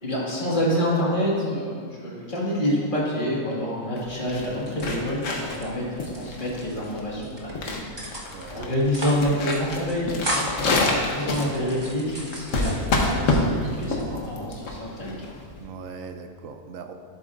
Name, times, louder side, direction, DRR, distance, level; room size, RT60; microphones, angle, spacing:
voice 1, 0.0-15.3, equal, 30° left, -6 dB, 2.0 m, -27 dB
sound 1, 4.0-15.6, left 2 dB, 55° left, 1.3 m, -27 dB
sound 2, 4.6-5.6 5.9-6.9 7.2-7.5 8.0-8.5 8.8-9.2 9.5-9.6 9.9-10.7 11.2-13.4 13.8-14.4, equal, 20° right, 0.9 m, -34 dB
voice 2, 8.3-9.0 15.6-16.9, right 5 dB, 70° right, 6 dB, 0.8 m, -40 dB
11.5 x 8.2 x 2.5 m, 2.2 s
omnidirectional pair, 1.7 m